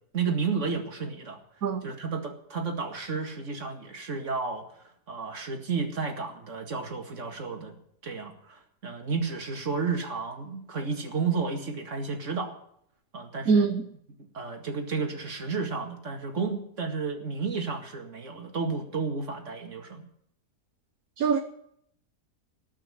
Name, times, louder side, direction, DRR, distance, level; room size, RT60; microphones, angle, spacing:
voice 1, 0.1-1.4 1.8-7.8 8.0-12.6 13.1-13.7 14.3-20.0, right 4 dB, 50° right, 2.4 m, -32 dB
voice 2, 13.5-13.8 21.2-21.4, right 5 dB, 65° right, 1.4 m, -23 dB
19.0 x 6.3 x 9.9 m
omnidirectional pair, 1.7 m